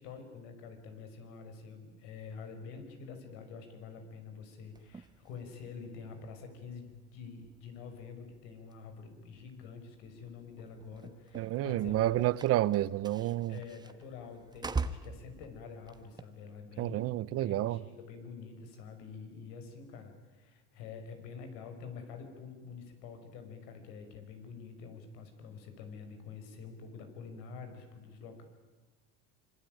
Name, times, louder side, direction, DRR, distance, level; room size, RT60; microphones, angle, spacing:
voice 1, 0.0-12.3 13.5-28.4, left 5 dB, 85° left, 5.9 m, -47 dB
sound 1, 4.7-16.2, right 4 dB, 15° right, 1.2 m, -45 dB
voice 2, 11.3-13.6 16.8-17.8, right 14 dB, 50° right, 0.8 m, -30 dB
26.0 x 24.5 x 9.3 m
cardioid pair, 135°, 31 cm